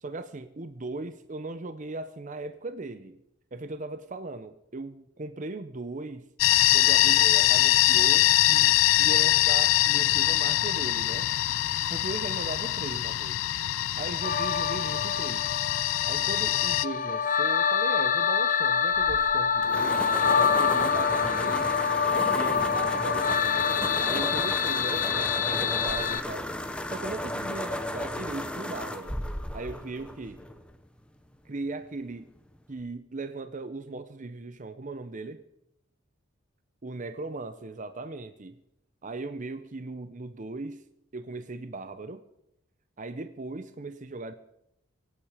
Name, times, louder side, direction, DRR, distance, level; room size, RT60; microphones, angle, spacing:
voice 1, 0.0-3.2 3.5-6.3 6.7-11.3 11.9-13.4 14.0-15.5 16.1-20.1 20.3-21.8 22.1-23.3 24.0-26.5 26.8-29.1 29.5-30.4 31.4-32.3 32.7-35.4 36.8-38.6 39.0-40.8 41.1-42.2 43.0-44.3, right 3 dB, 40° right, 10 dB, 0.7 m, -38 dB
sound 1, 6.4-16.8, left 14 dB, 70° left, 0.4 m, -23 dB
sound 2, 14.2-26.2, left 6 dB, 40° left, 0.8 m, -26 dB
sound 3, 18.9-30.8, left 1 dB, 5° left, 1.0 m, -34 dB
24.5 x 9.0 x 5.0 m, 0.80 s
head